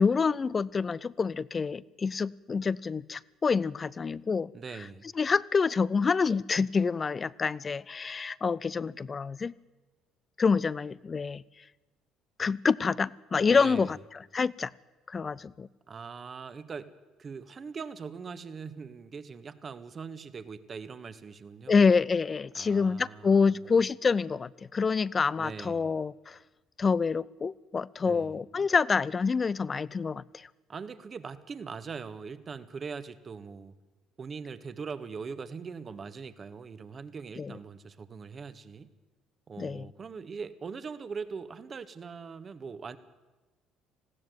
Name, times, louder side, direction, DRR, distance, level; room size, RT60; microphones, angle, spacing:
voice 1, 0.0-4.5 5.2-9.5 10.4-11.4 12.4-14.0 14.3-14.7 15.1-15.7 21.7-26.4 26.8-30.5 37.4-37.5 39.6-39.9, left 5 dB, 35° left, 21 dB, 0.7 m, -27 dB
voice 2, 4.5-5.1 13.5-14.0 15.9-16.9 17.2-21.9 22.5-23.7 25.4-26.0 28.0-28.4 30.7-33.7 34.2-38.9 39.5-43.0, right 5 dB, 40° right, 12 dB, 1.5 m, -41 dB
20.0 x 16.0 x 9.3 m, 1.2 s
hypercardioid pair, 60°, 0 cm